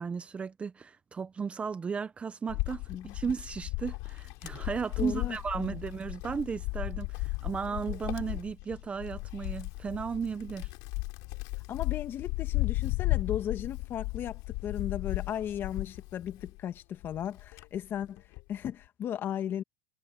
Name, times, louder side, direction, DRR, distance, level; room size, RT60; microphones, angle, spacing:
voice 1, 0.0-2.8 3.1-10.7, right 6 dB, 20° right, 0.8 m, -35 dB
Wind, 2.5-16.6 17.0-18.5, left 26 dB, 60° left, 3.6 m, -35 dB
voice 2, 5.0-5.8 11.7-18.2 18.5-19.6, left 10 dB, 35° left, 2.0 m, -36 dB
supercardioid pair, 130°, 7 cm